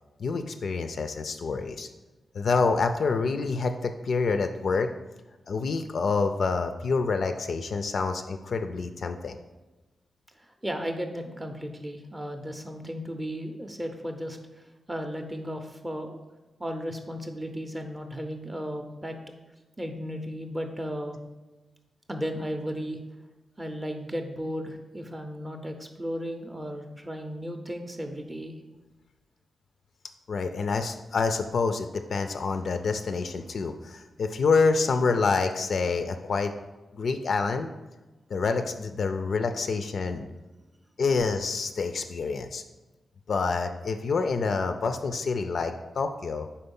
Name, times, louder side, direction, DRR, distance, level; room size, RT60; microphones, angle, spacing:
voice 1, 0.2-1.9 2.3-4.9 5.5-9.4 30.3-36.5 36.9-37.7 38.3-40.3 41.0-42.6 43.3-46.5, left 4 dB, 60° left, 7 dB, 0.3 m, -27 dB
voice 2, 10.6-14.4 14.9-16.2 16.6-19.1 19.8-21.2 22.1-23.0 23.6-28.5, equal, 15° right, 5 dB, 0.5 m, -35 dB
4.3 x 4.2 x 5.3 m, 1.1 s
wide cardioid pair, 145°, 0 cm